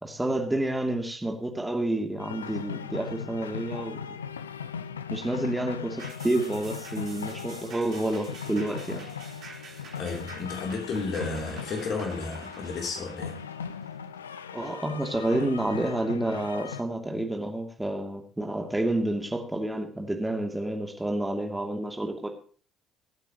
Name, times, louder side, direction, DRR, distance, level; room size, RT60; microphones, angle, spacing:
voice 1, 0.0-4.2 5.1-9.1 14.5-22.3, right 1 dB, 10° right, 2.8 m, -29 dB
sound 1, 2.2-16.8, left 7 dB, 80° left, 0.5 m, -39 dB
sound 2, 6.0-14.7 15.1-15.2, right 4 dB, 50° right, 4.1 m, -48 dB
voice 2, 9.9-13.4, left 4 dB, 50° left, 3.4 m, -32 dB
24.5 x 9.1 x 3.1 m
figure-of-eight pair, 50°, 0 cm